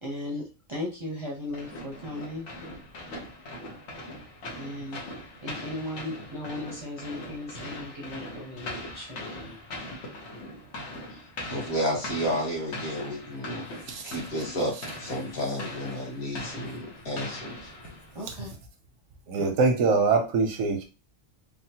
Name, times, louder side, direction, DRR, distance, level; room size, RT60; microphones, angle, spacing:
voice 1, 0.0-2.5 4.5-5.0 5.4-9.6 18.1-18.5 19.4-19.5, left 1 dB, 30° right, -4 dB, 0.5 m, -37 dB
sound 1, 1.5-18.3, left 1 dB, 85° left, 1.3 m, -40 dB
voice 2, 11.5-13.6 14.1-17.7, equal, 55° left, -2 dB, 1.5 m, -31 dB
voice 3, 19.3-20.8, right 4 dB, 85° right, 5 dB, 1.1 m, -23 dB
3.5 x 2.1 x 2.8 m, 0.31 s
omnidirectional pair, 1.3 m